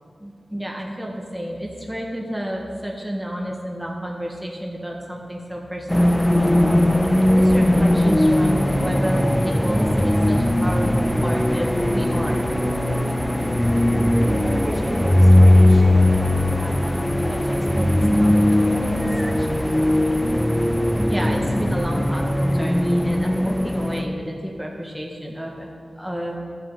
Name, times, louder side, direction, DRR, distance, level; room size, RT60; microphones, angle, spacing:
voice 1, 0.2-6.9 7.3-12.5 21.1-25.7 26.0-26.3, equal, 5° right, -1 dB, 1.5 m, -30 dB
sound 1, 5.9-24.0, left 1 dB, 10° left, 0.8 m, -19 dB
voice 2, 14.2-19.8, right 1 dB, 40° right, -1 dB, 1.8 m, -35 dB
12.5 x 7.5 x 4.8 m, 2.3 s
cardioid pair, 45°, 0 cm